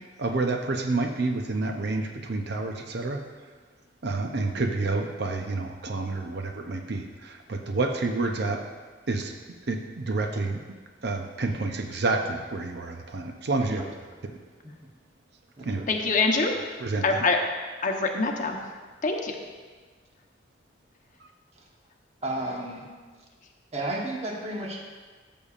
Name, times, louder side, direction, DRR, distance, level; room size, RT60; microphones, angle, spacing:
voice 1, 0.2-3.2 4.0-8.6 9.1-9.4 9.7-10.6 11.0-13.8 15.7-15.8 16.8-17.2, right 3 dB, 65° right, 4 dB, 0.6 m, -29 dB
voice 2, 13.6-13.9 14.6-14.7 15.6-15.9 21.5-21.6 22.2-22.9 23.7-24.8, right 1 dB, 35° right, -1 dB, 1.2 m, -33 dB
voice 3, 15.9-16.5 17.0-17.4 17.8-18.6 19.0-19.4, left 3 dB, 45° left, 2 dB, 0.9 m, -24 dB
13.5 x 6.9 x 2.5 m, 1.4 s
head